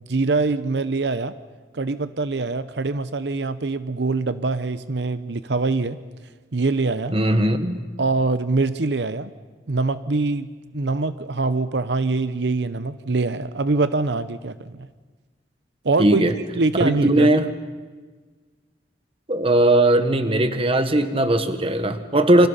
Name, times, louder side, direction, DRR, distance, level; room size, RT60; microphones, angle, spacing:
voice 1, 0.1-1.4 1.7-6.0 6.5-7.1 8.0-9.3 9.7-10.5 10.7-14.9 15.8-16.2 16.6-17.3, right 3 dB, 75° right, 12 dB, 0.8 m, -23 dB
voice 2, 7.1-7.8 16.0-16.4 16.8-17.5 19.3-22.5, right 1 dB, 35° right, 9 dB, 1.6 m, -18 dB
28.5 x 25.5 x 5.7 m, 1.4 s
head